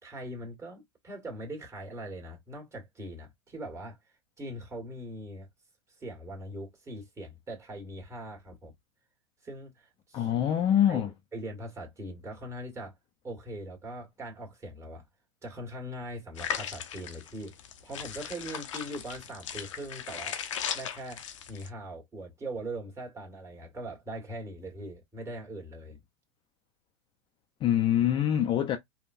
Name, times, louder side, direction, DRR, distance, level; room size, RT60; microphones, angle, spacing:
voice 1, 0.0-4.0 4.4-5.5 6.0-8.7 9.4-10.3 10.9-11.0 11.3-12.9 13.2-15.0 15.4-17.5 17.8-20.4 20.7-21.2 21.5-26.0, right 1 dB, 20° right, 1.6 m, -41 dB
voice 2, 10.1-11.1 27.6-28.8, left 10 dB, 30° left, 0.5 m, -24 dB
sound 1, 16.4-21.7, left 9 dB, 80° left, 0.7 m, -37 dB
3.6 x 2.3 x 2.5 m
hypercardioid pair, 110°, 16 cm